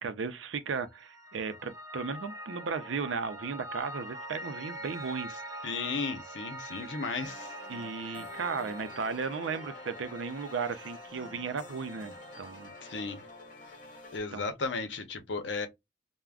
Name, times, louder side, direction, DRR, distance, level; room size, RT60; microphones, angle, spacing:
voice 1, 0.0-5.4 7.7-12.7 14.3-14.4, right 5 dB, 85° right, 0.5 m, -35 dB
Piano, 0.8-13.2, right 1 dB, 20° right, 0.5 m, -45 dB
voice 2, 5.6-7.5 8.1-8.2 12.8-13.2 14.1-15.7, left 4 dB, 70° left, 0.7 m, -35 dB
sound 1, 7.2-14.2, left 2 dB, 45° left, 1.0 m, -48 dB
2.4 x 2.1 x 3.3 m
head